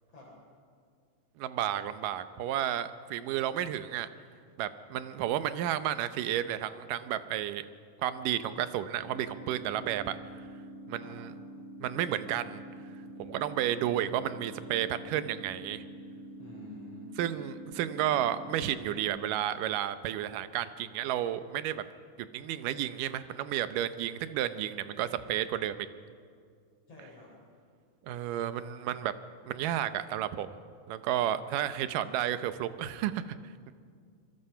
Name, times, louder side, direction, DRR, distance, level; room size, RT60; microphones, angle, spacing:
voice 1, 1.4-4.1 4.6-7.7 8.0-10.2 10.9-11.3 11.8-12.6 13.2-15.8 17.2-21.8 22.2-25.9 28.0-29.1 29.5-30.5 30.9-33.4, right 11 dB, 90° right, 12 dB, 2.4 m, -32 dB
sound 1, 9.0-19.0, right 1 dB, 15° left, 2.9 m, -46 dB
voice 2, 16.4-17.1 25.1-25.3 26.9-27.3, left 1 dB, 50° left, -5 dB, 4.8 m, -50 dB
26.5 x 20.5 x 5.7 m, 2.2 s
omnidirectional pair, 3.7 m